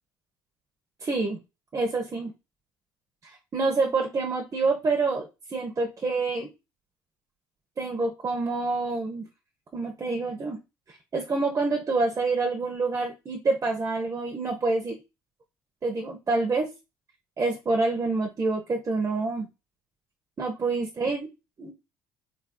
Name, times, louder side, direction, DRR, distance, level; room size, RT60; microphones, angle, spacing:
voice 1, 1.0-1.4 1.7-2.3 3.2-6.5 7.8-9.2 9.7-10.6 11.1-15.0 15.8-16.7 17.4-19.5 20.4-21.3 21.6-21.7, right 3 dB, 35° right, 1 dB, 1.1 m, -27 dB
4.0 x 3.5 x 2.3 m, 0.25 s
hypercardioid pair, 55°, 10 cm